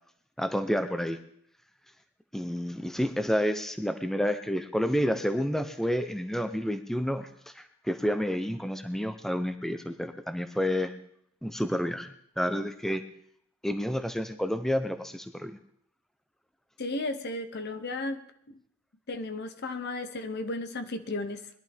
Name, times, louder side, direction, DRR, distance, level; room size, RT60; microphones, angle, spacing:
voice 1, 0.4-1.2 2.3-10.9 11.4-13.0 13.6-15.6, equal, ahead, 8 dB, 0.6 m, -30 dB
voice 2, 16.8-18.6 19.1-21.5, left 2 dB, 50° left, 9 dB, 0.8 m, -34 dB
21.0 x 11.5 x 3.5 m, 0.68 s
head